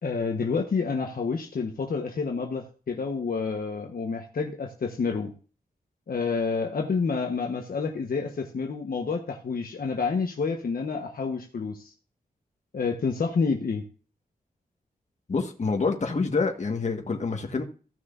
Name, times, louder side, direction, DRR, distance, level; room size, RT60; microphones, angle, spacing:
voice 1, 0.0-5.3 6.1-11.9 12.7-13.8, left 5 dB, 70° left, 2 dB, 1.2 m, -29 dB
voice 2, 15.3-17.6, left 4 dB, 50° left, 3 dB, 1.6 m, -27 dB
15.5 x 6.3 x 2.6 m, 0.37 s
wide cardioid pair, 100°, 16 cm